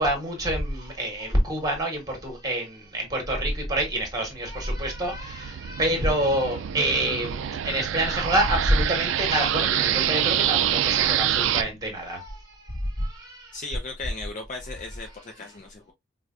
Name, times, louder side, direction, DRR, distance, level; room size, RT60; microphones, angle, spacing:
voice 1, 0.0-13.6, right 1 dB, 20° right, 1.3 m, -27 dB
sound 1, 4.3-11.6, right 10 dB, 75° right, 0.3 m, -26 dB
voice 2, 13.5-15.9, left 3 dB, 40° left, 0.4 m, -37 dB
4.8 x 2.2 x 2.4 m
head